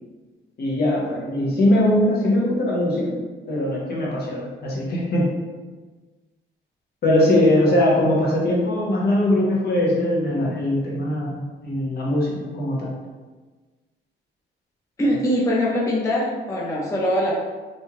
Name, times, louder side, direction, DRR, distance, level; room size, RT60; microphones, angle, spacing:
voice 1, 0.6-3.2 3.5-5.3 7.0-12.9, left 1 dB, 55° left, -4 dB, 0.9 m, -21 dB
voice 2, 15.0-17.3, equal, 15° left, -5 dB, 0.5 m, -22 dB
2.6 x 2.3 x 3.0 m, 1.3 s
cardioid pair, 90°, 20 cm